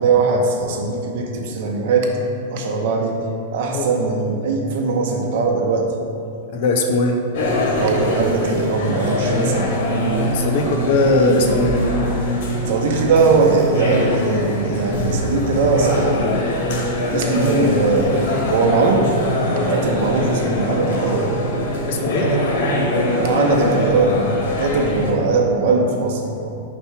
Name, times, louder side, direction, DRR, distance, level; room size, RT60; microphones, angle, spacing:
voice 1, 0.0-2.1 2.5-3.2 3.5-5.9 7.8-9.7 12.7-16.5 17.1-19.1 19.4-21.3 22.2-22.4 23.2-26.6, right 3 dB, 50° right, 2 dB, 0.8 m, -20 dB
voice 2, 6.5-7.2 10.2-11.8 21.9-22.3, left 2 dB, 45° left, 3 dB, 0.6 m, -19 dB
sound 1, 7.3-25.1, left 1 dB, 65° left, 1.2 m, -22 dB
4.7 x 4.2 x 5.7 m, 2.5 s
supercardioid pair, 175°, 0 cm